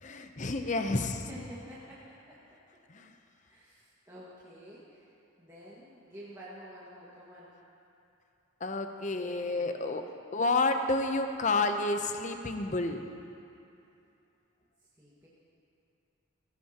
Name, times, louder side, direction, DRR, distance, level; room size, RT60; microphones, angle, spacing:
voice 1, 0.0-1.2 2.9-3.1 8.6-10.0 10.3-13.1, left 3 dB, 35° left, 6 dB, 0.7 m, -30 dB
voice 2, 0.6-2.4 3.5-5.1 5.4-7.5 9.1-9.8 15.0-15.3, equal, 15° right, -10 dB, 1.7 m, -49 dB
18.0 x 16.0 x 2.9 m, 2.7 s
head